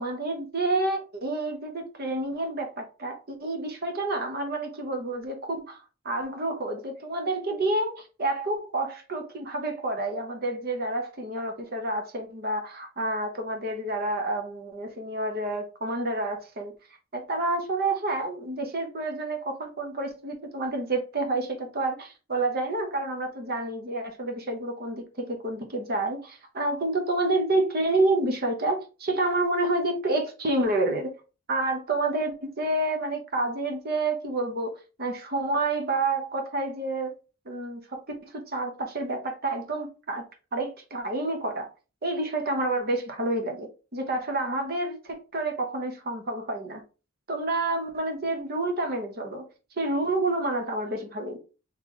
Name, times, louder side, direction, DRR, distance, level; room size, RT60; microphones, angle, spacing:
voice 1, 0.0-16.7 17.1-31.1 31.5-37.2 37.4-40.2 40.5-41.7 42.0-46.8 47.3-49.5 49.8-51.4, right 2 dB, 50° right, 1.0 m, -29 dB
3.2 x 3.1 x 3.7 m
head